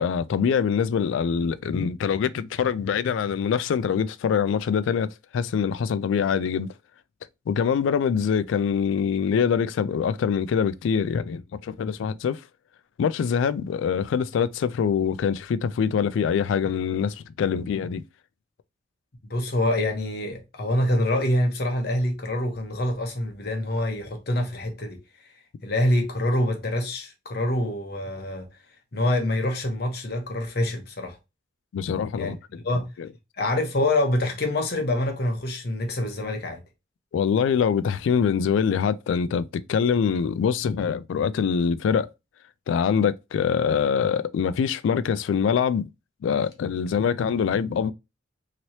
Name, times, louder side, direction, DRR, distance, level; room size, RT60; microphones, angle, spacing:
voice 1, 0.0-5.1 5.3-6.7 7.5-12.4 13.0-18.0 31.7-32.6 33.0-33.1 37.1-42.1 42.7-45.9 46.2-47.9, left 7 dB, 85° left, 0.3 m, -24 dB
voice 2, 19.3-25.0 25.6-28.5 28.9-31.2 32.2-32.3 32.6-32.8 33.4-36.6, left 1 dB, 55° left, 0.9 m, -25 dB
3.0 x 2.9 x 2.7 m
head